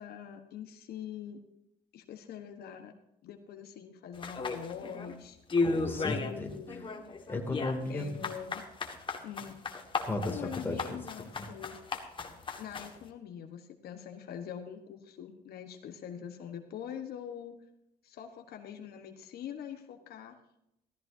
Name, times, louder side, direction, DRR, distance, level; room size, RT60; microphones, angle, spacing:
voice 1, 0.0-1.4 1.9-2.9 3.2-5.4 6.0-6.8 7.9-8.6 9.2-9.6 10.2-11.8 12.6-17.5 18.0-20.4, left 8 dB, 65° left, 5 dB, 1.3 m, -43 dB
sound 1, 4.2-5.1 5.5-6.4 6.7-13.0, left 3 dB, 30° left, 1.7 m, -34 dB
voice 2, 5.6-6.5 7.3-8.2 10.0-11.0 11.3-11.5, left 2 dB, 10° left, 1 dB, 2.6 m, -35 dB
16.0 x 14.0 x 2.7 m, 0.84 s
cardioid pair, 110°, 17 cm